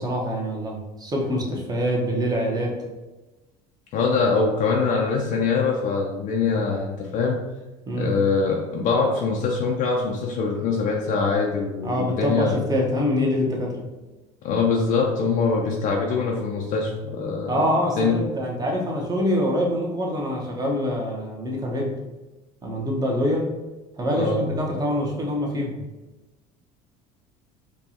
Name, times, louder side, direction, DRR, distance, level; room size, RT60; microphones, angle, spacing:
voice 1, 0.0-2.8 7.9-8.2 11.8-13.8 17.5-21.9 22.6-23.5 24.0-25.8, equal, 25° right, -1 dB, 1.0 m, -25 dB
voice 2, 3.9-7.4 7.9-12.6 14.4-17.6 17.9-18.2 24.1-24.4, left 4 dB, 55° left, -1 dB, 0.6 m, -23 dB
4.5 x 2.3 x 2.8 m, 1.1 s
supercardioid pair, 95°, 17 cm